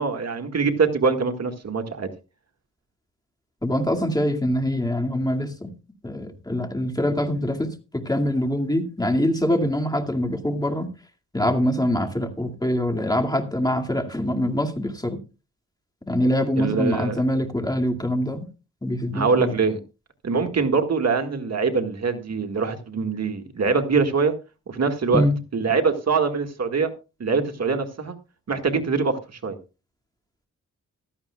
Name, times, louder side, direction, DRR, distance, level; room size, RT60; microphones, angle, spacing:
voice 1, 0.0-2.1 16.6-17.2 19.1-19.8 20.2-24.3 24.7-25.3 25.5-26.9 27.2-28.2 28.5-29.6, right 4 dB, 55° right, 1.9 m, -23 dB
voice 2, 3.6-5.7 6.0-10.9 11.3-15.2 16.1-18.4 18.8-19.5 25.1-25.4, left 1 dB, 10° left, 2.2 m, -24 dB
16.0 x 13.0 x 2.3 m
cardioid pair, 60°, 32 cm